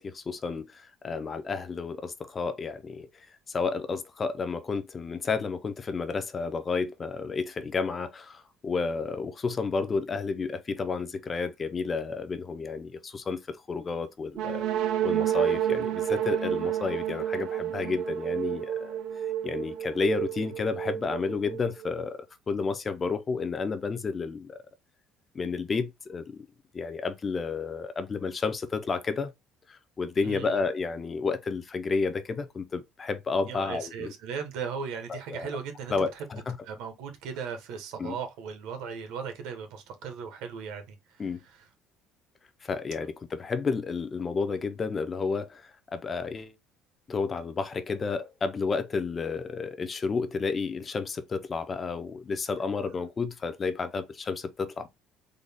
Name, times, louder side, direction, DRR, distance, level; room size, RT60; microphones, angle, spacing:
voice 1, 0.0-14.6 15.0-19.0 19.4-24.6 25.3-26.5 26.7-29.3 29.7-34.1 35.1-35.5 35.9-36.6 38.0-38.2 41.2-41.4 42.6-46.5 47.1-54.9, left 4 dB, 20° left, 0.4 m, -31 dB
sound 1, 14.3-22.0, right 10 dB, 60° right, 0.5 m, -30 dB
voice 2, 30.2-30.6 33.5-36.2 36.6-41.0 41.4-41.7, right 6 dB, 75° right, 1.0 m, -37 dB
3.8 x 2.2 x 3.3 m
cardioid pair, 165°, 0 cm